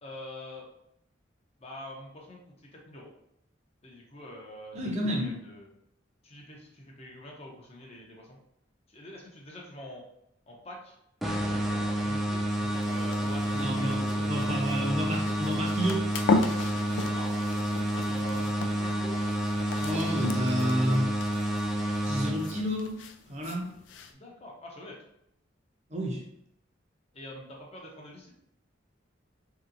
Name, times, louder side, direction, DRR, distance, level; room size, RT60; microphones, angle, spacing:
voice 1, 0.0-0.7 1.6-2.4 2.7-3.1 3.8-5.7 6.2-8.4 8.9-10.0 10.5-10.9 11.5-14.6 14.9-15.1 17.0-17.4 18.0-19.2 24.1-25.0 27.1-28.3, left 1 dB, 35° left, -1 dB, 0.7 m, -45 dB
voice 2, 4.7-5.3 13.5-16.1 19.8-21.1 22.0-23.0 23.3-23.7 25.9-26.2, equal, 35° right, -1 dB, 0.7 m, -30 dB
sound 1, 11.2-22.9, right 1 dB, ahead, 0.4 m, -29 dB
sound 2, 12.5-24.1, left 3 dB, 75° left, 0.3 m, -36 dB
3.1 x 2.8 x 2.6 m, 0.75 s
head